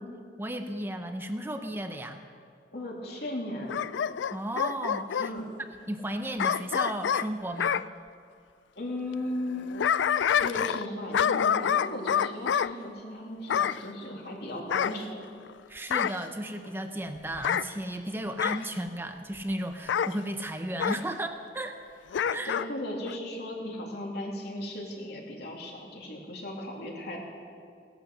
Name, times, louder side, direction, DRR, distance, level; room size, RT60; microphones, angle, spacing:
voice 1, 0.4-2.2 4.3-5.3 5.9-7.9 15.7-21.8 22.3-22.6, right 1 dB, 10° right, 6 dB, 0.7 m, -34 dB
voice 2, 2.7-3.8 5.2-5.4 8.8-9.8 10.4-15.2 22.4-27.2, left 1 dB, 65° left, -1 dB, 3.1 m, -36 dB
Bark / Growling, 3.7-5.3 6.4-7.9 9.5-10.9 11.1-12.7 13.5-13.8 14.7-15.5 15.9-16.2 17.3-17.7 18.4-18.7 19.9-20.1 20.8-21.0 22.1-22.7 23.1-23.2, left 8 dB, 85° left, 0.4 m, -27 dB
17.5 x 11.5 x 6.9 m, 2.3 s
head